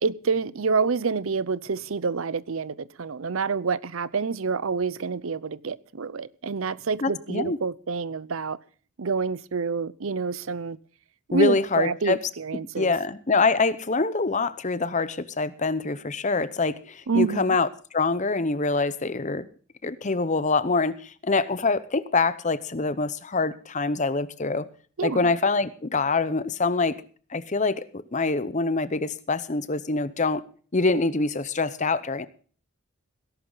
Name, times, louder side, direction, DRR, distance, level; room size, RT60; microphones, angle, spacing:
voice 1, 0.0-8.6 9.0-10.8 11.3-12.9 17.1-17.5 25.0-25.3, right 4 dB, 70° right, 0.6 m, -27 dB
voice 2, 7.0-7.6 11.3-12.2 12.8-17.7 17.9-19.4 19.8-24.7 25.0-27.0 27.3-27.8 28.1-30.4 30.7-32.3, left 3 dB, 35° left, 0.8 m, -25 dB
18.5 x 11.5 x 4.0 m
head